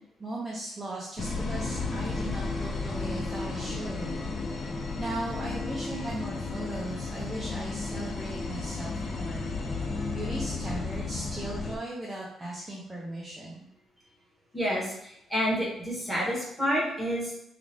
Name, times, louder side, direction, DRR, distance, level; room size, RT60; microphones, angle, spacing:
voice 1, 0.2-4.2 4.6-4.7 5.0-9.5 9.8-13.7, right 2 dB, 15° right, -6 dB, 0.6 m, -38 dB
sound 1, 1.2-11.8, left 3 dB, 40° left, 0.4 m, -33 dB
voice 2, 14.5-17.3, equal, 5° left, -6 dB, 1.3 m, -29 dB
3.7 x 2.5 x 3.2 m, 0.77 s
cardioid pair, 140°, 0 cm